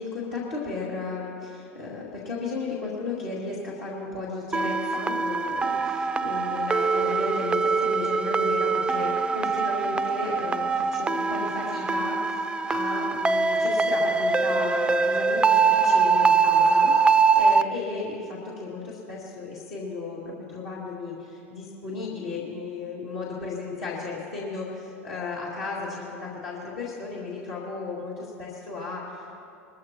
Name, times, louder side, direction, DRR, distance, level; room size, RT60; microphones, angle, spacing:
voice 1, 0.0-29.4, left 3 dB, 70° left, -7 dB, 2.4 m, -34 dB
sound 1, 4.5-17.6, right 4 dB, 15° right, 0.4 m, -23 dB
21.0 x 14.0 x 3.0 m, 2.6 s
hypercardioid pair, 85°, 8 cm